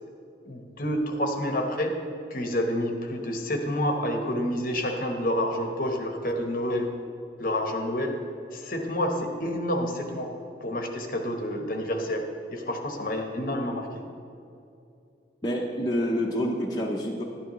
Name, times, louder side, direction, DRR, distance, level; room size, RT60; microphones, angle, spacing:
voice 1, 0.5-2.0 2.3-6.9 7.4-8.2 8.5-10.3 10.6-12.2 12.5-14.0, equal, 50° left, 3 dB, 1.0 m, -28 dB
voice 2, 15.4-17.2, equal, 25° left, -3 dB, 0.7 m, -28 dB
11.5 x 10.0 x 3.0 m, 2.6 s
head